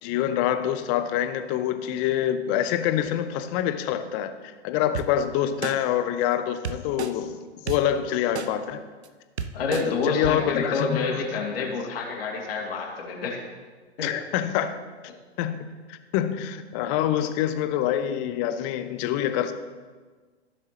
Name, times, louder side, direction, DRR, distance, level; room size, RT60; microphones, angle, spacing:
voice 1, 0.0-8.8 10.0-11.4 14.0-14.8 15.4-19.5, left 10 dB, 30° left, 10 dB, 0.6 m, -26 dB
sound 1, 4.9-5.1 5.6-5.7 6.6-7.1 7.7-7.8 8.3-8.5 9.0-9.1 9.4-9.8 10.2-10.3, right 6 dB, 70° right, 0.8 m, -30 dB
voice 2, 9.5-13.4 14.0-14.1, left 4 dB, 55° left, -1 dB, 2.3 m, -28 dB
15.5 x 6.6 x 2.9 m, 1.4 s
figure-of-eight pair, 105°, 34 cm